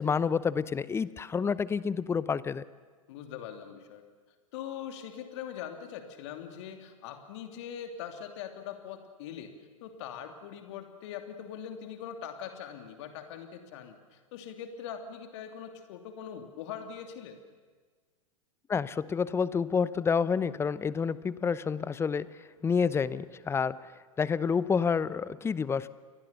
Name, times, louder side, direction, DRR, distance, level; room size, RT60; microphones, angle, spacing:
voice 1, 0.0-2.6 18.7-22.3 22.6-23.8 24.2-25.9, left 6 dB, 15° left, 18 dB, 0.8 m, -28 dB
voice 2, 3.1-4.0 4.5-9.5 9.8-17.4, left 8 dB, 55° left, 6 dB, 2.7 m, -42 dB
29.5 x 22.5 x 6.9 m, 1.4 s
figure-of-eight pair, 100°, 18 cm